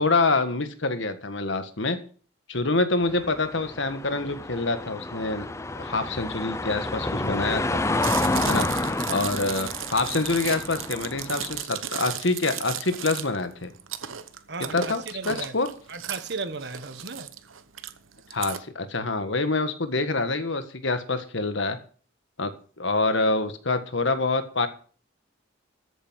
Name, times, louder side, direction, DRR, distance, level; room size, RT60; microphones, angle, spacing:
voice 1, 0.0-2.0 2.5-5.5 5.7-7.8 8.5-8.7 9.1-13.7 14.6-15.7 18.3-21.8 22.4-22.5 22.8-24.7, left 3 dB, 70° left, 1.6 m, -26 dB
sound 1, 3.0-11.6, left 2 dB, 15° left, 0.5 m, -30 dB
Chewing mastication, 7.9-18.6, right 10 dB, 85° right, 1.0 m, -35 dB
voice 2, 14.5-15.5 15.9-17.3, right 3 dB, 55° right, 1.5 m, -35 dB
14.0 x 8.1 x 6.4 m
head